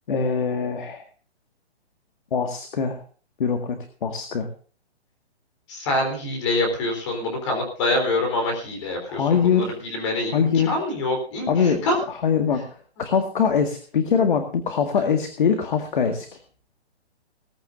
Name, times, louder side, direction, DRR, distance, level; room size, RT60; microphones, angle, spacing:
voice 1, 0.1-1.0 2.3-3.0 3.4-4.5 9.1-9.7 10.3-10.8 11.5-11.8 12.1-16.3, left 6 dB, 50° left, 6 dB, 1.9 m, -23 dB
voice 2, 5.7-11.9, left 2 dB, 25° left, 4 dB, 3.7 m, -26 dB
19.0 x 15.0 x 2.6 m, 0.40 s
hypercardioid pair, 170°, 33 cm